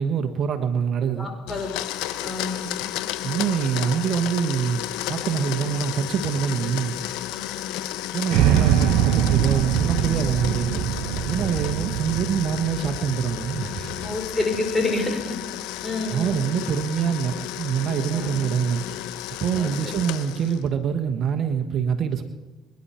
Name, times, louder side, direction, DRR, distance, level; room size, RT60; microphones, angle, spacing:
voice 1, 0.0-1.3 3.2-6.9 8.1-10.7 11.2-14.1 16.1-18.8 19.4-22.2, right 7 dB, 60° right, 7 dB, 1.2 m, -25 dB
voice 2, 1.2-1.7 2.2-2.7 7.3-7.8 11.3-11.7 14.0-15.4 15.8-16.4 18.1-18.4 19.5-19.7, left 2 dB, 20° left, 2 dB, 4.7 m, -29 dB
Domestic sounds home sounds, 1.5-20.7, left 13 dB, 80° left, 0.8 m, -33 dB
sound 1, 8.3-14.4, right 11 dB, 75° right, 0.8 m, -23 dB
25.0 x 10.5 x 4.4 m, 1.1 s
hypercardioid pair, 60°, 0 cm